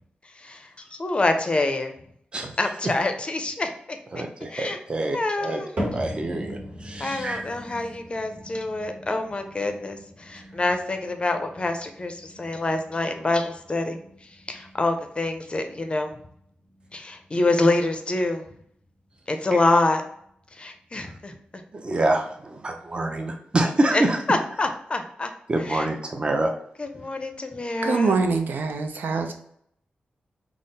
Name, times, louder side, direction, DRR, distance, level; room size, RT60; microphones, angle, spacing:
voice 1, 0.4-1.9 2.6-4.2 4.5-4.8 5.1-5.7 7.0-14.0 14.5-16.2 16.9-18.4 19.3-20.0 20.5-21.4 23.9-24.0 24.3-25.3 25.7-25.9 26.8-28.2, left 2 dB, 35° left, 6 dB, 0.5 m, -26 dB
voice 2, 4.1-5.6 5.9-7.8 10.4-10.5 21.0-21.1 21.7-24.2 25.5-26.5, right 2 dB, 30° right, 3 dB, 0.5 m, -26 dB
sound 1, 5.8-22.1 22.4-22.9 23.5-23.6 24.4-24.5, equal, 55° right, 1.3 m, -40 dB
voice 3, 27.8-29.3, right 4 dB, 80° right, 5 dB, 0.5 m, -24 dB
3.6 x 2.0 x 4.0 m, 0.68 s
cardioid pair, 80°, 3 cm